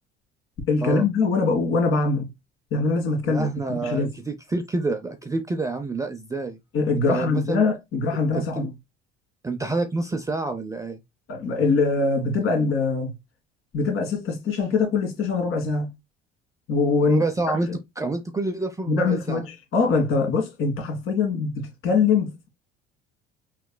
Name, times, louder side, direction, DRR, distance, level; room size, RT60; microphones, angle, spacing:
voice 1, 0.7-2.3 2.7-3.5 3.8-4.1 6.7-8.7 11.3-13.1 13.7-15.9 16.7-17.2 18.9-19.4 19.7-22.5, left 4 dB, 45° left, 1.7 m, -23 dB
voice 2, 3.2-6.6 7.1-7.6 8.3-8.7 9.4-11.0 17.0-17.7 18.0-19.4, right 3 dB, 10° right, 0.5 m, -28 dB
5.8 x 3.0 x 2.2 m
figure-of-eight pair, 60°, 31 cm